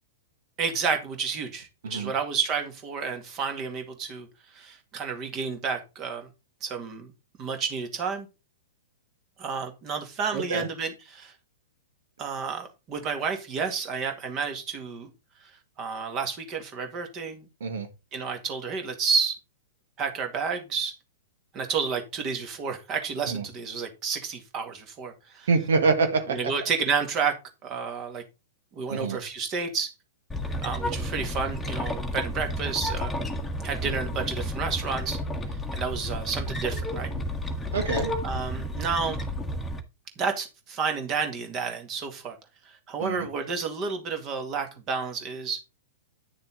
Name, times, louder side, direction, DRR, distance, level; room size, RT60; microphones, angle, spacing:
voice 1, 0.6-4.3 4.5-6.3 6.6-7.1 7.4-8.3 9.4-11.3 12.2-15.1 15.4-15.5 15.8-17.5 18.1-19.4 20.0-20.9 21.5-25.5 26.3-27.4 27.6-28.2 28.7-29.9 30.6-33.1 33.6-35.2 35.7-37.1 38.2-39.2 40.2-42.4 42.7-45.6, right 5 dB, 30° right, 2.2 m, -30 dB
voice 2, 10.3-10.7 17.6-17.9 23.3-23.4 25.5-26.5 28.9-29.2 37.7-38.1 43.0-43.3, right 4 dB, 60° right, 1.8 m, -26 dB
sound 1, 30.3-39.8, left 1 dB, 5° left, 1.5 m, -31 dB
9.9 x 6.6 x 4.0 m
figure-of-eight pair, 105°, 0 cm